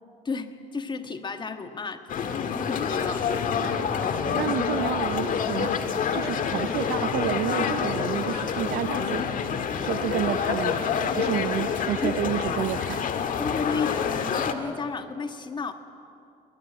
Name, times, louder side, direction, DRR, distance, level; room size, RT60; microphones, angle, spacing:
voice 1, 0.2-3.5 11.9-12.1 13.4-15.7, left 4 dB, 25° left, 7 dB, 1.6 m, -33 dB
sound 1, 2.1-14.5, left 6 dB, 55° left, 1.7 m, -27 dB
voice 2, 4.2-5.7 6.1-9.2 9.8-10.8 11.2-13.1, right 13 dB, 75° right, 17 dB, 0.6 m, -30 dB
22.5 x 19.0 x 8.8 m, 2.6 s
cardioid pair, 110°, 17 cm